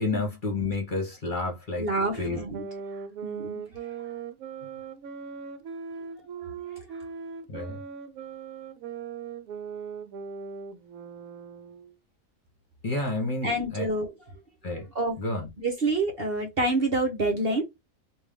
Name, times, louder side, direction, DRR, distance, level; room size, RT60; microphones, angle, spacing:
voice 1, 0.0-1.9 2.2-2.4 7.5-7.8 12.8-13.9 14.6-14.9 15.2-15.5, left 2 dB, 35° left, 1.2 m, -30 dB
voice 2, 1.8-2.6 3.2-4.0 6.4-7.0 13.4-14.1 14.9-15.2 15.6-17.6, right 2 dB, 45° right, 1.0 m, -28 dB
sound 1, 1.9-12.0, right 6 dB, 75° right, 1.0 m, -39 dB
3.5 x 2.7 x 3.4 m
omnidirectional pair, 1.6 m